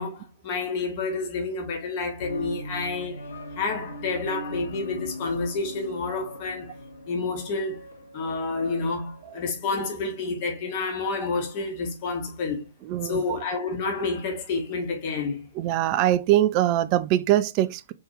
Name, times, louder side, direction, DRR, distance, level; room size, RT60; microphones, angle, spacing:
voice 1, 0.0-3.3 3.5-6.8 7.1-7.8 8.1-12.7 13.0-15.4, left 3 dB, 40° left, 1.5 m, -29 dB
sound 1, 2.2-9.5, equal, 70° left, 0.9 m, -40 dB
voice 2, 12.8-13.2 15.5-17.9, right 13 dB, 35° right, 0.4 m, -22 dB
4.4 x 3.6 x 3.3 m
figure-of-eight pair, 115°, 0 cm